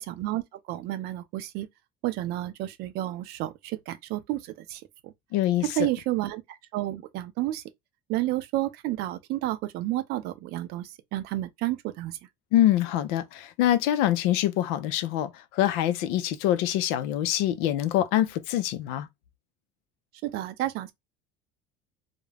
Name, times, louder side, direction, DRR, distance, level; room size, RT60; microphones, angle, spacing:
voice 1, 0.0-1.7 2.0-5.1 5.6-7.6 8.1-12.2 20.2-20.9, right 15 dB, 55° right, 0.5 m, -31 dB
voice 2, 5.3-5.6 12.5-19.1, left 12 dB, 75° left, 0.5 m, -25 dB
2.4 x 2.1 x 3.2 m
cardioid pair, 140°, 19 cm